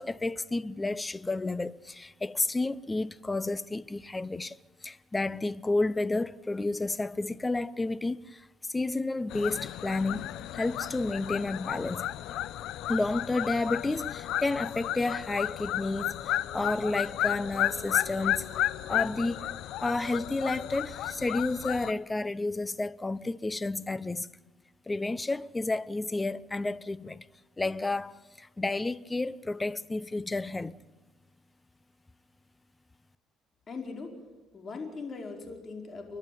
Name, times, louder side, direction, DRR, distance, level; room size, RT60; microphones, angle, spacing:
voice 1, 0.0-8.5 8.7-12.1 12.9-18.6 18.9-19.4 19.8-24.3 24.9-27.2 27.6-30.7, left 2 dB, 15° left, 0.7 m, -31 dB
sound 1, 9.3-21.9, left 13 dB, 75° left, 0.7 m, -33 dB
voice 2, 33.7-34.2 34.5-36.2, left 4 dB, 35° left, 4.8 m, -40 dB
30.0 x 11.5 x 9.3 m
cardioid pair, 105°, 0 cm